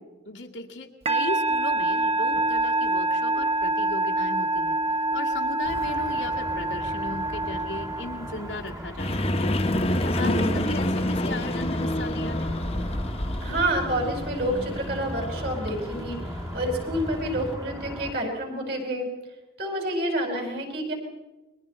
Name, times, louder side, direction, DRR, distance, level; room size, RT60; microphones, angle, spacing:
voice 1, 0.3-4.8 5.1-9.4 10.0-12.5, left 2 dB, 85° left, 1 dB, 2.0 m, -37 dB
Musical instrument, 1.1-8.7, right 2 dB, 35° right, 1.1 m, -26 dB
sound 1, 5.6-18.1, equal, 20° right, 1.5 m, -38 dB
sound 2, 9.0-17.6, left 1 dB, 35° left, 1.2 m, -28 dB
voice 2, 10.1-10.8 13.4-16.2 16.5-19.1 19.6-20.9, right 1 dB, 55° right, 2 dB, 4.8 m, -28 dB
29.5 x 22.5 x 4.3 m, 1.1 s
head